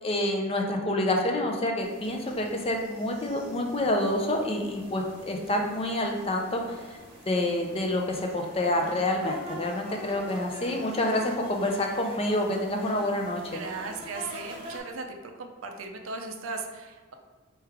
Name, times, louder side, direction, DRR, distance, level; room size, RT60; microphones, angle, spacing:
voice 1, 0.0-6.6 7.3-13.6, left 1 dB, 25° left, 2 dB, 0.5 m, -28 dB
sound 1, 1.8-14.8, equal, 25° right, 0.9 m, -45 dB
voice 2, 13.5-15.1 15.4-17.1, right 4 dB, 70° right, 4 dB, 0.5 m, -37 dB
4.6 x 3.2 x 3.4 m, 1.4 s
head